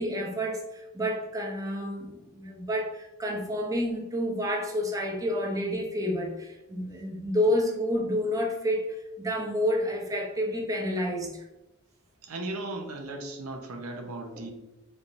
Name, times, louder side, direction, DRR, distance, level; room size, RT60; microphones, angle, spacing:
voice 1, 0.0-11.4 14.4-14.5, equal, 15° right, 0 dB, 0.6 m, -29 dB
voice 2, 12.2-14.5, right 2 dB, 80° right, 4 dB, 0.7 m, -36 dB
4.1 x 3.3 x 2.6 m, 0.99 s
head